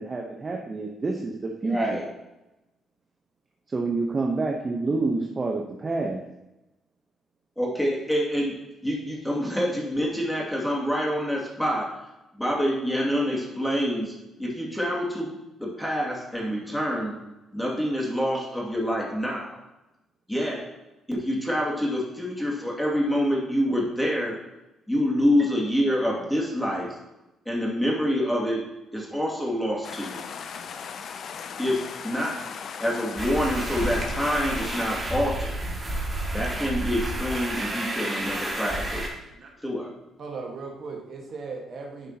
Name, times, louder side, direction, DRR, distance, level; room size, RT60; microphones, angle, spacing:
voice 1, 0.0-1.8 3.7-6.2, right 3 dB, 30° right, 1 dB, 0.9 m, -28 dB
voice 2, 1.7-2.1 7.6-8.6 8.8-11.9 12.4-17.2 17.5-19.6 20.3-20.7 21.1-24.4 24.9-26.9 27.5-28.6 28.9-30.3 31.6-32.3 32.8-35.6 36.3-39.1 39.6-39.9, equal, 5° left, -3 dB, 2.3 m, -26 dB
sound 1, 29.8-34.9, left 6 dB, 60° left, 0.5 m, -37 dB
sound 2, 33.2-39.1, right 1 dB, 15° right, 2.2 m, -30 dB
voice 3, 40.2-42.1, right 4 dB, 55° right, 1 dB, 1.5 m, -37 dB
10.5 x 5.6 x 2.9 m, 0.97 s
cardioid pair, 85°, 0 cm